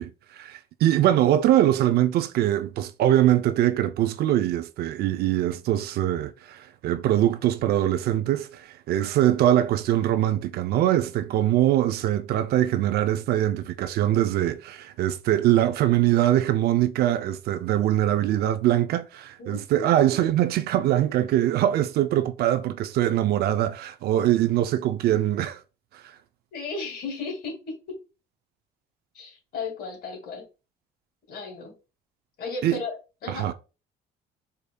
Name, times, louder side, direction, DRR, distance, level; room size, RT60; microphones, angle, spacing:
voice 1, 0.0-25.6 32.6-32.8 33.3-33.5, right 12 dB, 70° right, 0.5 m, -23 dB
voice 2, 19.4-19.9 26.5-27.7 29.1-30.4 31.3-31.7 32.4-33.0 33.2-33.5, left 4 dB, 65° left, 2.0 m, -34 dB
4.9 x 2.7 x 2.2 m
cardioid pair, 110°, 17 cm